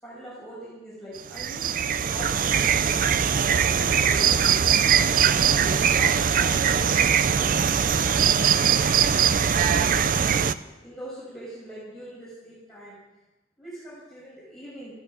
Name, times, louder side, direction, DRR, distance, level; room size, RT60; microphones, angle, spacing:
voice 1, 0.0-2.8 3.6-4.6 5.2-10.2 10.6-13.0 13.6-14.9, equal, ahead, -9 dB, 6.0 m, -41 dB
sound 1, 1.2-10.5, right 7 dB, 45° right, 0.5 m, -21 dB
14.5 x 11.0 x 7.7 m, 1.1 s
head